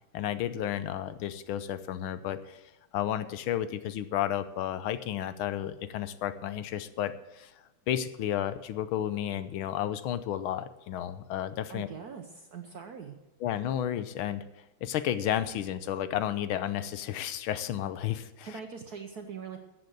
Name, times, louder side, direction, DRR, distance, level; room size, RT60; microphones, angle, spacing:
voice 1, 0.1-2.6 2.9-7.5 7.9-11.9 13.4-14.4 14.8-18.6, left 11 dB, 90° left, 12 dB, 1.6 m, -32 dB
voice 2, 11.7-13.2 18.4-19.6, right 6 dB, 55° right, 4 dB, 1.2 m, -42 dB
14.0 x 7.9 x 6.3 m, 1.0 s
omnidirectional pair, 2.3 m